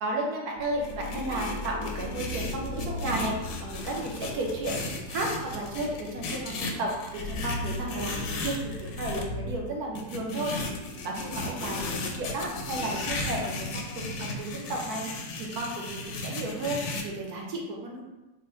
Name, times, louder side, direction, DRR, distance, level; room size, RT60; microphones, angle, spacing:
voice 1, 0.0-3.3 3.6-10.5 10.8-18.0, right 2 dB, 70° right, -1 dB, 1.1 m, -33 dB
sound 1, 0.6-9.6, left 2 dB, 90° left, 1.2 m, -38 dB
sound 2, 0.8-9.2 10.0-17.0, left 2 dB, 70° left, 0.8 m, -35 dB
3.8 x 2.1 x 4.1 m, 1.1 s
omnidirectional pair, 1.8 m